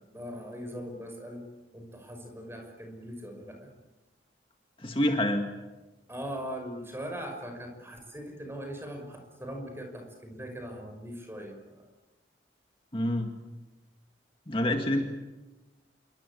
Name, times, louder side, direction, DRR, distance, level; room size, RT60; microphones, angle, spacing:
voice 1, 0.0-1.5 1.7-3.7 6.1-11.9, equal, 15° right, 4 dB, 5.6 m, -40 dB
voice 2, 4.8-5.5 12.9-13.3 14.5-15.0, left 1 dB, 30° left, 3 dB, 2.0 m, -27 dB
28.0 x 24.0 x 8.6 m, 1.1 s
head